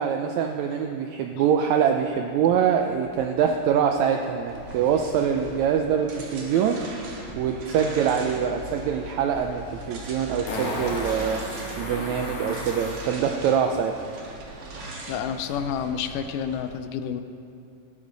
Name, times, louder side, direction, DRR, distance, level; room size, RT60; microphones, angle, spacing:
voice 1, 0.0-11.4 11.8-14.0, right 8 dB, 85° right, 4 dB, 1.6 m, -24 dB
sound 1, 2.2-12.7, equal, 30° right, 1.4 m, -44 dB
sound 2, 4.5-16.7, right 2 dB, 50° right, 2.2 m, -41 dB
Fart, 9.4-9.5 10.5-13.0 15.4-15.5, left 1 dB, 50° left, 2.9 m, -33 dB
voice 2, 15.1-17.2, left 8 dB, 80° left, 9 dB, 2.0 m, -29 dB
17.5 x 9.9 x 4.0 m, 2.6 s
omnidirectional pair, 3.8 m